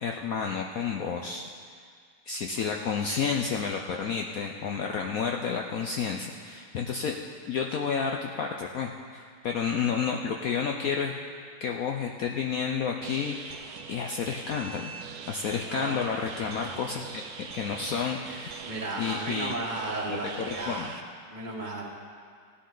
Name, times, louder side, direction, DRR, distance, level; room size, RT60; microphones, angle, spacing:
voice 1, 0.0-1.4 2.3-7.1 7.5-11.1 11.6-14.9 15.3-18.6 19.0-19.5 20.1-20.2 20.5-20.9, left 6 dB, 65° left, 2 dB, 0.9 m, -31 dB
sound 1, 13.0-21.0, right 6 dB, 65° right, 1.1 m, -42 dB
voice 2, 18.6-20.9 21.3-21.9, right 2 dB, 25° right, -2 dB, 1.6 m, -34 dB
16.5 x 10.0 x 3.9 m, 2.1 s
omnidirectional pair, 2.0 m